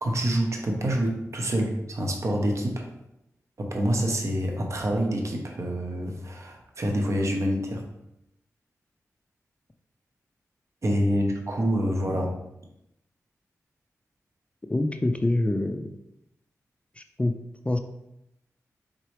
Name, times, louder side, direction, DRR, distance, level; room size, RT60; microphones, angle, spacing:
voice 1, 0.0-2.9 3.6-7.8 10.8-12.4, equal, 55° right, 2 dB, 0.9 m, -27 dB
voice 2, 14.7-15.9 17.0-17.3 17.6-17.8, left 1 dB, 20° left, 7 dB, 0.4 m, -25 dB
4.3 x 3.8 x 3.3 m, 0.86 s
cardioid pair, 60°, 6 cm